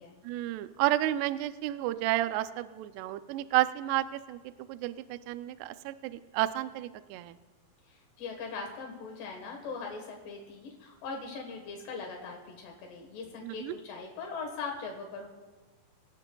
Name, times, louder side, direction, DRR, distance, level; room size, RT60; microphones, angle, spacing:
voice 1, 0.2-4.4 4.7-7.3 13.4-13.8, right 15 dB, 80° right, 11 dB, 2.5 m, -31 dB
voice 2, 7.9-15.3, left 4 dB, 75° left, 2 dB, 3.5 m, -40 dB
25.5 x 15.5 x 2.3 m, 1.3 s
omnidirectional pair, 5.0 m